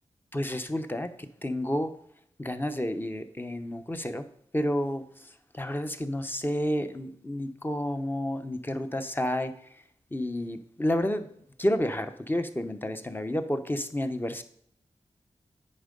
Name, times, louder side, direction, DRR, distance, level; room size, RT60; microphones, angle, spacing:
voice 1, 0.3-1.9 2.4-4.3 4.5-9.5 10.1-11.3 11.6-14.4, left 1 dB, 15° left, 8 dB, 0.8 m, -30 dB
8.7 x 5.2 x 5.3 m, 0.67 s
wide cardioid pair, 65°, 12 cm